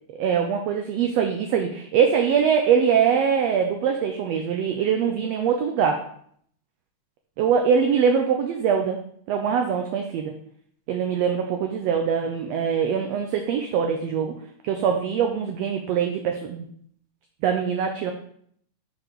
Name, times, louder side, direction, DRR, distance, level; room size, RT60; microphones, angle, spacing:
voice 1, 0.1-6.0 7.4-9.0 9.3-10.3 10.9-14.3 14.6-16.7 17.4-18.1, right 7 dB, 80° right, 4 dB, 1.5 m, -23 dB
6.6 x 4.0 x 4.5 m, 0.64 s
omnidirectional pair, 3.5 m